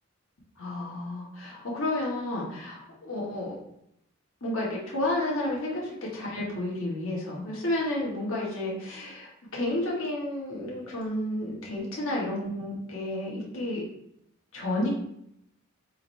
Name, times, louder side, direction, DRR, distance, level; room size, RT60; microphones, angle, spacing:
voice 1, 0.6-3.6 4.4-13.8 14.5-14.9, left 1 dB, 70° left, -4 dB, 1.3 m, -31 dB
3.8 x 2.6 x 4.3 m, 0.76 s
head